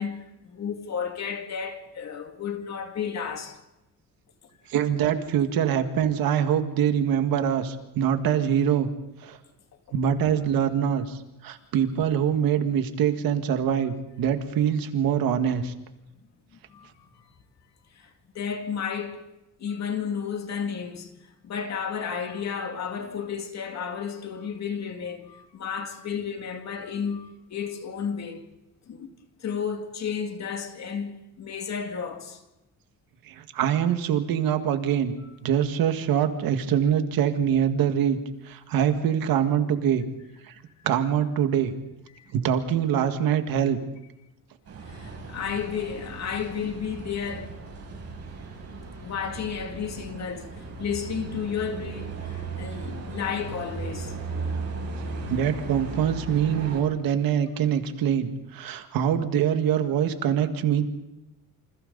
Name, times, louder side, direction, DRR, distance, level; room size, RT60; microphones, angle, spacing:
voice 1, 0.0-3.6 16.5-17.1 17.9-19.3 19.6-21.1 21.4-28.4 28.9-29.1 29.4-32.4 36.1-36.3 42.1-42.2 44.9-47.5 49.0-54.1, left 7 dB, 50° left, 2.4 m, -32 dB
voice 2, 4.7-8.9 9.2-9.4 9.9-15.7 33.3-35.1 35.4-38.2 38.5-40.1 40.5-40.6 40.8-41.7 42.3-43.8 55.3-60.8, right 9 dB, 80° right, 1.9 m, -24 dB
sound 1, 44.7-56.8, right 3 dB, 45° right, 7.2 m, -36 dB
28.0 x 27.0 x 4.0 m
cardioid pair, 145°, 35 cm